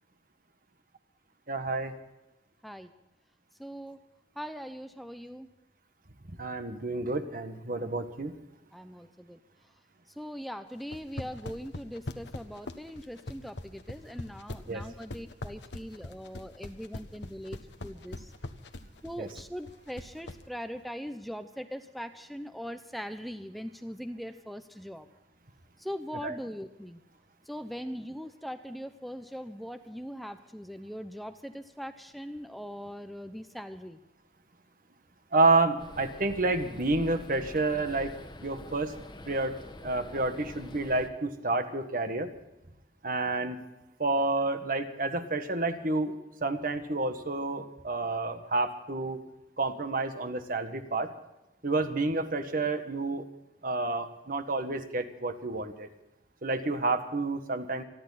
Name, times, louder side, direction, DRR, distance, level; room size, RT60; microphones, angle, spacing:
voice 1, 1.5-1.9 6.4-8.3 14.7-14.8 19.2-19.3 26.2-26.4 35.3-38.1 38.4-38.9 39.3-42.3 43.0-43.6 44.0-46.1 46.4-49.2 49.6-51.1 51.6-53.2 53.6-55.9 56.4-57.8, right 2 dB, 50° right, 8 dB, 1.5 m, -29 dB
voice 2, 3.6-4.0 4.4-5.5 8.7-9.4 10.2-18.3 19.0-25.1 25.8-27.0 27.5-34.0, equal, ahead, 8 dB, 0.7 m, -41 dB
sound 1, 10.8-20.4, left 2 dB, 80° left, 1.3 m, -41 dB
sound 2, 35.8-41.1, left 1 dB, 25° left, 1.3 m, -46 dB
28.5 x 11.0 x 4.1 m, 0.96 s
head